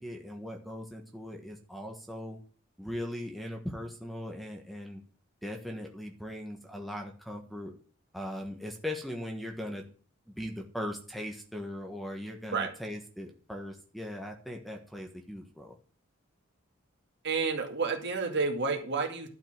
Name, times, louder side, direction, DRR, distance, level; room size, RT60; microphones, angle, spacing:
voice 1, 0.0-2.4 2.8-5.0 5.4-7.7 8.1-9.8 10.4-15.7, left 1 dB, ahead, 2 dB, 1.4 m, -39 dB
voice 2, 17.2-19.3, right 4 dB, 50° right, 3 dB, 2.4 m, -30 dB
12.0 x 5.8 x 7.8 m, 0.42 s
head